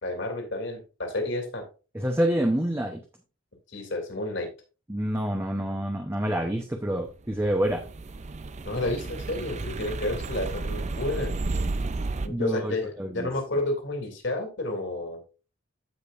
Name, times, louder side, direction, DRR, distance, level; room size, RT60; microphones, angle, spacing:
voice 1, 0.0-1.6 3.7-4.5 8.6-11.3 12.2-15.2, left 2 dB, 60° left, 3 dB, 2.9 m, -31 dB
voice 2, 1.9-3.0 4.9-7.8 12.3-13.3, right 1 dB, 10° right, 3 dB, 0.9 m, -27 dB
sound 1, 7.3-12.3, right 3 dB, 35° right, 0.5 m, -32 dB
15.0 x 5.2 x 2.5 m, 0.34 s
head